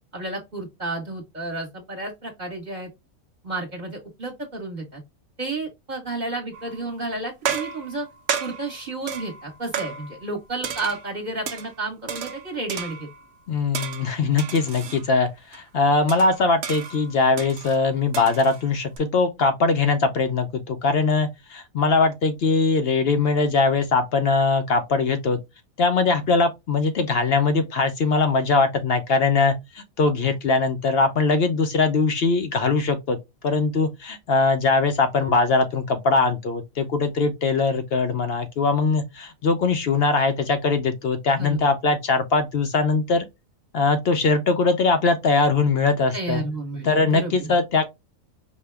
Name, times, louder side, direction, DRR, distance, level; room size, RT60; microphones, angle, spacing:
voice 1, 0.1-2.9 3.4-5.0 5.4-8.1 8.4-13.1 41.4-41.6 46.1-47.5, right 2 dB, 35° right, 1.2 m, -31 dB
sound 1, 6.5-6.9 7.4-10.3 10.6-11.7 12.1-13.3 13.7-15.0 15.5-15.6 16.1-19.0, right 7 dB, 65° right, 0.9 m, -33 dB
voice 2, 13.5-25.4 25.8-33.2 33.4-43.2 43.7-46.4 46.8-47.8, left 3 dB, 60° left, 0.7 m, -21 dB
5.3 x 2.2 x 3.3 m
omnidirectional pair, 1.5 m